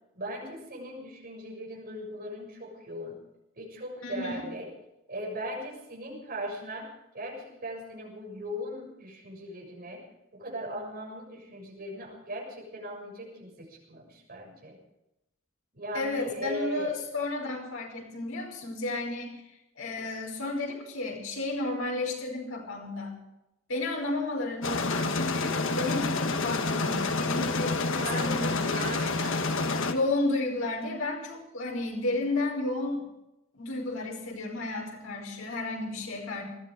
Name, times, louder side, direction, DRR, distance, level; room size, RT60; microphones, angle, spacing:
voice 1, 0.2-3.2 3.6-4.7 5.1-10.1 10.3-14.8 15.7-17.0 28.0-29.6, equal, 45° right, -1 dB, 7.1 m, -39 dB
voice 2, 4.0-4.5 15.9-19.4 19.8-23.2 23.7-29.0 29.8-33.0 33.5-36.4, left 2 dB, 85° left, 1 dB, 5.3 m, -32 dB
sound 1, 24.6-29.9, left 3 dB, 65° left, 1.4 m, -28 dB
20.0 x 14.5 x 5.1 m, 0.89 s
head